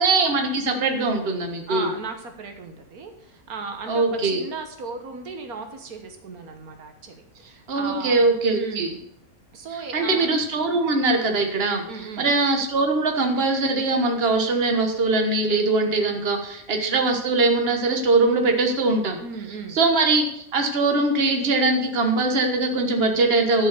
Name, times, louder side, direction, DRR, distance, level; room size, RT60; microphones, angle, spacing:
voice 1, 0.0-1.9 3.9-4.4 7.7-8.9 9.9-11.8 12.2-19.2 19.7-23.7, right 3 dB, 45° right, 4 dB, 1.6 m, -21 dB
voice 2, 1.7-9.0 9.5-10.3 11.9-12.3 19.2-19.8, right 4 dB, 80° right, 5 dB, 1.7 m, -36 dB
12.0 x 5.5 x 6.8 m, 0.73 s
omnidirectional pair, 1.5 m